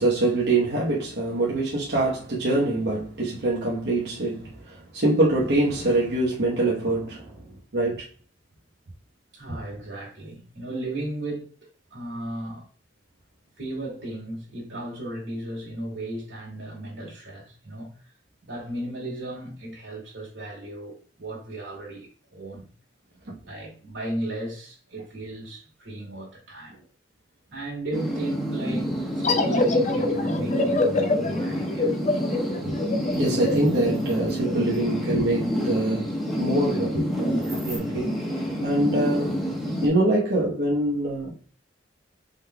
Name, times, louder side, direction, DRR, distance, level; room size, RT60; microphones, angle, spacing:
voice 1, 0.0-7.5 7.7-8.1 23.3-23.4 32.6-32.8 33.1-38.1 38.6-39.4 39.8-41.3, right 2 dB, 60° right, 1.0 m, -24 dB
voice 2, 9.3-11.5 11.9-12.7 13.6-17.9 18.4-22.7 23.4-26.8 27.5-32.0, right 1 dB, 80° right, 2.2 m, -35 dB
sound 1, 27.9-39.9, equal, ahead, 1.0 m, -28 dB
sound 2, 29.2-34.5, left 3 dB, 35° left, 0.5 m, -25 dB
sound 3, 33.0-34.4 34.7-34.8 37.4-37.8, right 2 dB, 20° right, 1.7 m, -45 dB
5.1 x 3.7 x 2.2 m
head